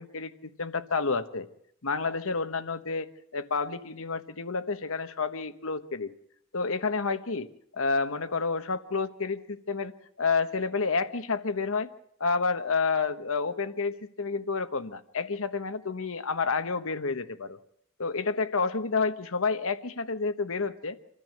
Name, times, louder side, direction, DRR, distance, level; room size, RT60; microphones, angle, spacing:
voice 1, 0.0-1.5 1.8-6.1 6.5-7.5 7.7-9.9 10.2-11.9 12.2-17.6 18.0-21.0, left 4 dB, 65° left, 11 dB, 1.2 m, -29 dB
26.0 x 14.0 x 7.7 m, 0.71 s
head